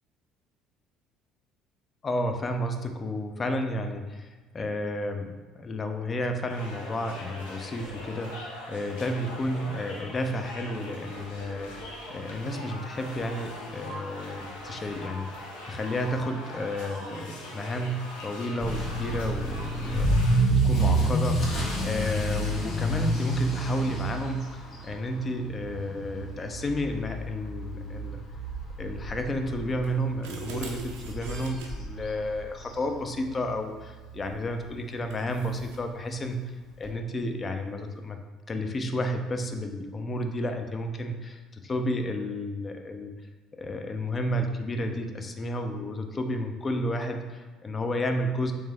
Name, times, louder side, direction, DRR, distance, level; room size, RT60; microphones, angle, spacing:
voice 1, 2.0-28.2 28.8-36.4 36.8-38.2 38.5-43.1 43.6-48.5, left 1 dB, 30° left, 5 dB, 0.4 m, -32 dB
sound 1, 6.5-20.4, left 1 dB, 70° left, 0.7 m, -41 dB
Motor vehicle (road) / Accelerating revving vroom, 18.6-33.5 33.7-34.1 34.6-34.7 35.1-35.2 35.4-35.5 36.8-36.9, right 1 dB, 45° left, 1.1 m, -29 dB
sound 2, 29.8-31.7 34.3-34.6 35.1-35.8, right 4 dB, 65° right, 0.5 m, -42 dB
3.2 x 3.2 x 3.3 m, 1.3 s
figure-of-eight pair, 55°, 0 cm